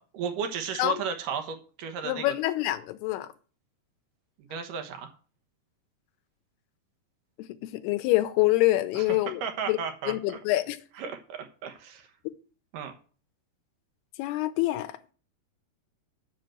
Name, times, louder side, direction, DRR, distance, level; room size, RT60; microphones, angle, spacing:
voice 1, 0.0-2.3 4.5-5.1 8.9-10.4 11.0-12.1 12.7-12.9, right 6 dB, 65° right, 2.4 m, -34 dB
voice 2, 2.0-3.3 7.6-9.4 9.7-9.8 10.1-10.8 12.3-12.4 14.2-15.0, left 17 dB, 85° left, 2.6 m, -26 dB
7.7 x 5.8 x 7.7 m
omnidirectional pair, 4.7 m